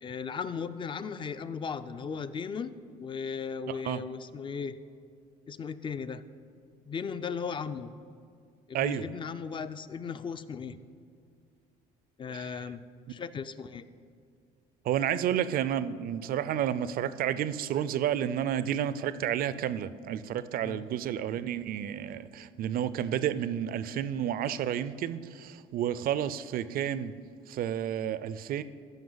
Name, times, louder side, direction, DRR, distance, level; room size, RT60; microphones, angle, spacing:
voice 1, 0.0-2.7 3.0-4.8 5.5-6.2 6.9-7.9 8.7-10.8 12.2-12.8 13.1-13.9 20.6-20.8, left 6 dB, 30° left, 0.4 m, -36 dB
voice 2, 3.7-4.0 8.7-9.1 12.3-12.6 14.9-27.2 27.5-28.6, right 10 dB, 60° right, 0.4 m, -31 dB
14.5 x 5.5 x 3.9 m
cardioid pair, 110°, 17 cm